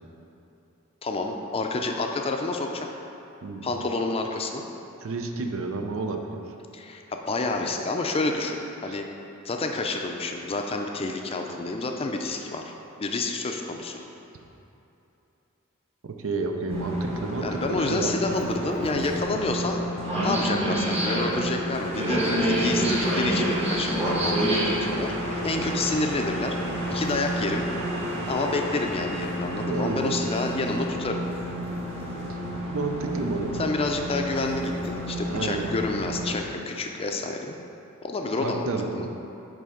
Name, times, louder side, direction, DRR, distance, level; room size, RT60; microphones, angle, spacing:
voice 1, 1.0-2.9 3.6-4.6 6.7-9.1 9.4-12.7 13.0-14.0 17.4-19.8 20.2-26.6 26.9-27.7 28.3-31.2 33.6-37.6 38.0-39.1, left 3 dB, 25° left, 3 dB, 0.4 m, -29 dB
voice 2, 5.0-6.4 8.9-9.0 16.0-18.1 29.7-30.1 32.7-33.5 35.3-35.7 38.4-39.0, right 3 dB, 65° right, 4 dB, 0.6 m, -30 dB
sound 1, 16.7-36.3, right 1 dB, 30° right, 1.2 m, -29 dB
8.5 x 3.3 x 5.0 m, 3.0 s
head